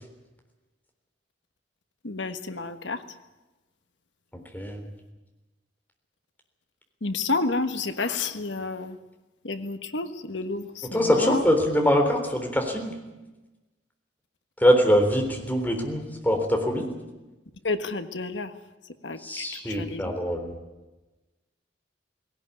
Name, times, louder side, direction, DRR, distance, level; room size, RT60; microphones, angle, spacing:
voice 1, 2.0-3.0 7.0-9.0 9.4-11.4 17.6-18.5 19.0-20.1, left 3 dB, 80° left, 9 dB, 1.5 m, -30 dB
voice 2, 10.8-12.9 14.6-16.9 19.2-20.5, equal, 10° left, 3 dB, 3.7 m, -23 dB
18.5 x 18.0 x 9.6 m, 1.1 s
head